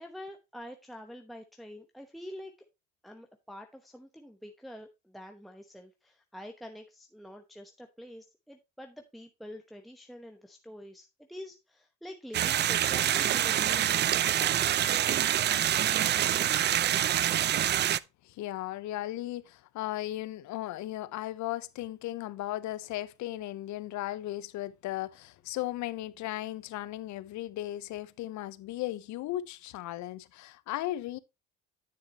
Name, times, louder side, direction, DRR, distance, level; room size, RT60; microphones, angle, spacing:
voice 1, 0.0-2.5 3.0-15.1, equal, ahead, 1.0 m, -46 dB
sound 1, 12.3-18.0, right 11 dB, 35° right, 0.4 m, -26 dB
voice 2, 18.2-31.2, left 15 dB, 60° left, 0.8 m, -36 dB
10.0 x 6.4 x 2.9 m
supercardioid pair, 90°, 33 cm